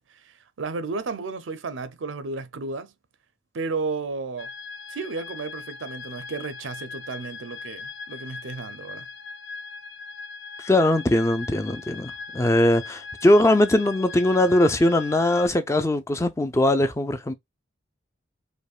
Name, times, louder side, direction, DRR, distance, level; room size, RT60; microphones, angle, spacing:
voice 1, 0.1-2.9 3.5-4.5 4.9-9.1, right 4 dB, 80° right, 0.5 m, -33 dB
sound 1, 4.4-15.5, left 4 dB, 65° left, 0.8 m, -39 dB
voice 2, 10.6-17.3, left 1 dB, 15° left, 0.4 m, -21 dB
5.2 x 2.1 x 2.4 m
head